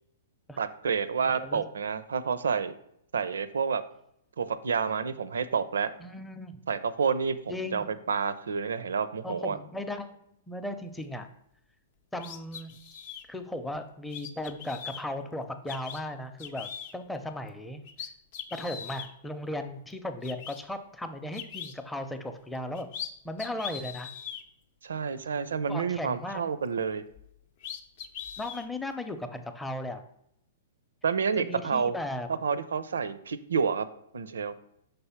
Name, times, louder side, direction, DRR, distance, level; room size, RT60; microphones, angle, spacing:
voice 1, 0.6-2.7 3.1-3.8 4.4-5.9 6.7-9.6 24.8-27.0 31.0-31.9 32.4-33.9 34.1-34.5, right 6 dB, 80° right, 14 dB, 0.4 m, -29 dB
voice 2, 6.0-6.6 7.5-7.9 9.2-10.1 10.5-11.3 12.1-12.7 13.3-17.8 18.5-22.9 23.2-24.1 25.7-26.4 28.4-30.0 31.4-32.3, left 1 dB, 5° left, 7 dB, 0.6 m, -36 dB
sound 1, 12.2-13.2 14.1-15.0 15.7-16.0 16.4-16.9 17.5-17.6 17.8-19.1 19.9-20.0 20.2-20.6 21.3-21.7 22.6-23.1 23.4-24.4 27.2-27.3 27.6-28.7, left 8 dB, 55° left, 0.6 m, -40 dB
5.4 x 3.4 x 5.7 m, 0.75 s
hypercardioid pair, 115°, 0 cm